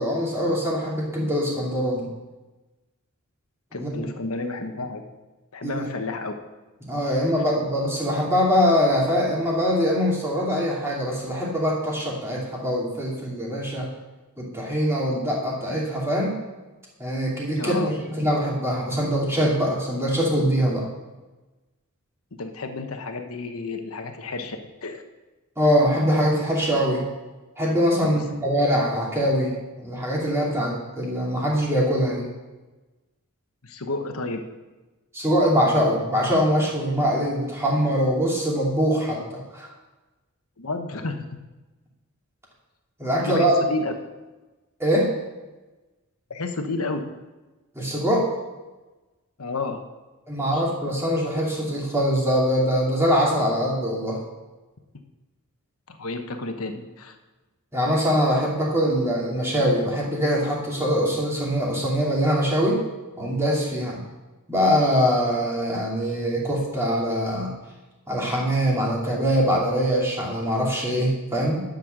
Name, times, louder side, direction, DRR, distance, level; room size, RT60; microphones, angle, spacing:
voice 1, 0.0-2.1 3.8-4.0 5.6-5.9 6.8-13.9 14.4-16.4 17.0-20.9 25.6-27.0 27.6-32.3 35.1-39.7 43.0-43.6 44.8-45.1 47.7-48.3 50.3-54.2 57.7-62.8 63.2-64.0 64.5-67.5 68.1-71.6, equal, 10° right, -4 dB, 2.7 m, -23 dB
voice 2, 3.7-5.0 5.5-6.3 17.5-17.9 22.4-25.0 28.0-28.2 33.6-34.4 40.6-41.2 43.2-43.4 43.7-43.9 46.3-47.0 49.4-49.8 50.5-50.6 55.9-57.2, left 3 dB, 75° left, 6 dB, 1.1 m, -31 dB
11.0 x 6.6 x 6.5 m, 1.2 s
head